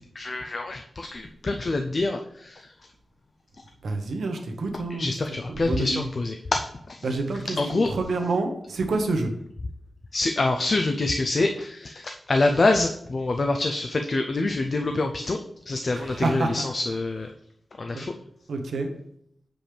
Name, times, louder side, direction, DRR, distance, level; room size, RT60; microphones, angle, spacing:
voice 1, 0.1-2.7 4.9-7.1 7.3-7.9 10.1-15.4 15.7-17.3 17.8-18.1, left 2 dB, 45° left, 4 dB, 0.4 m, -26 dB
voice 2, 3.8-5.1 5.6-6.0 7.0-9.3 16.0-16.6 17.9-18.1 18.5-18.9, right 3 dB, 90° right, 5 dB, 1.0 m, -28 dB
7.5 x 5.1 x 3.4 m, 0.71 s
wide cardioid pair, 125°, 0 cm